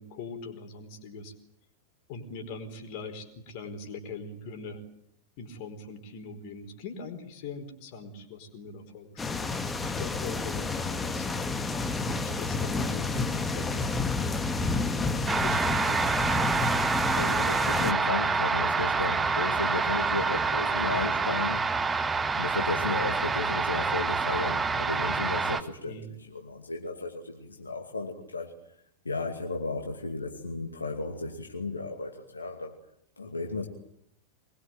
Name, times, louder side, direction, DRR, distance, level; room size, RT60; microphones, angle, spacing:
voice 1, 0.0-1.3 2.1-4.8 5.4-11.3 11.7-13.9 15.4-16.1 25.9-26.1, left 4 dB, 45° left, 6 dB, 4.6 m, -42 dB
sound 1, 9.2-17.9, left 3 dB, 15° left, 1.9 m, -30 dB
sound 2, 15.3-25.6, right 4 dB, 15° right, 1.6 m, -27 dB
voice 2, 17.1-21.6 22.3-26.0 26.3-28.5 29.0-32.8 33.2-33.7, left 3 dB, 75° left, 3 dB, 2.5 m, -34 dB
24.0 x 21.5 x 9.3 m, 0.72 s
figure-of-eight pair, 90°, 0 cm